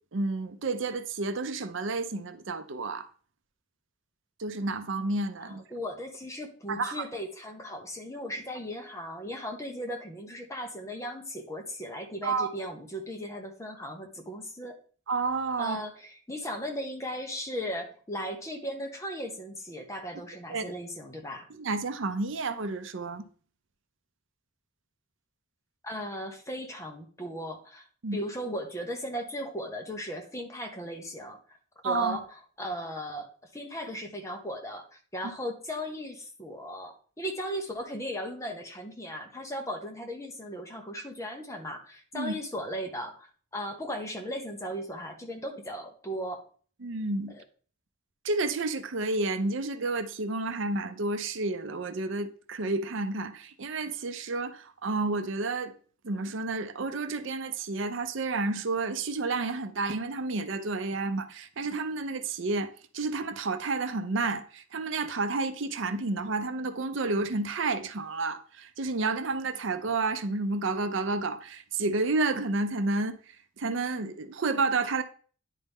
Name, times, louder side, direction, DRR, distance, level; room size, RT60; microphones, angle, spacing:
voice 1, 0.1-3.1 4.4-5.6 6.7-7.2 12.2-12.5 15.1-15.8 20.5-20.7 21.5-23.2 28.0-28.2 31.8-32.2 42.1-42.3 46.8-47.3 48.2-55.7 56.0-73.1 73.6-75.0, right 3 dB, 65° right, 0.6 m, -30 dB
voice 2, 5.4-14.8 15.6-21.5 25.8-27.8 28.1-31.4 31.8-33.3 33.5-46.5 47.3-47.4, equal, 15° left, 1.0 m, -37 dB
10.0 x 4.2 x 3.6 m
head